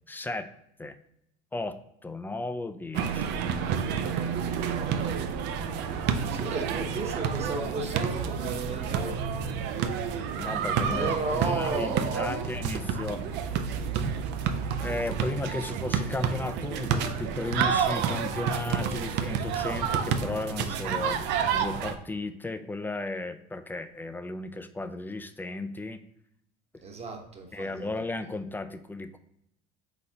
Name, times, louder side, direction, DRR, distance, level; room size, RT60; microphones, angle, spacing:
voice 1, 0.1-0.5 0.8-1.0 1.5-3.4 10.4-13.4 14.8-21.3 21.5-26.0 27.5-29.2, left 2 dB, 10° left, 9 dB, 0.3 m, -35 dB
sound 1, 2.9-22.0, right 7 dB, 60° right, 0.5 m, -29 dB
voice 2, 6.3-9.2 10.9-12.5 26.8-27.9, right 3 dB, 35° right, 3 dB, 1.0 m, -33 dB
4.1 x 4.0 x 2.8 m, 0.74 s
hypercardioid pair, 80°, 20 cm